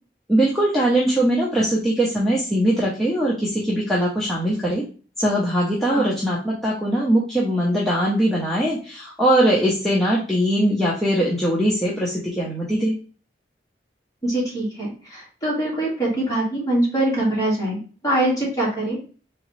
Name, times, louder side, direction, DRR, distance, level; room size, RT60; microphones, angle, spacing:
voice 1, 0.3-4.8 5.2-12.9, right 1 dB, ahead, -6 dB, 0.8 m, -21 dB
voice 2, 14.2-19.0, right 1 dB, 20° left, -5 dB, 2.1 m, -23 dB
4.2 x 3.8 x 3.2 m, 0.38 s
head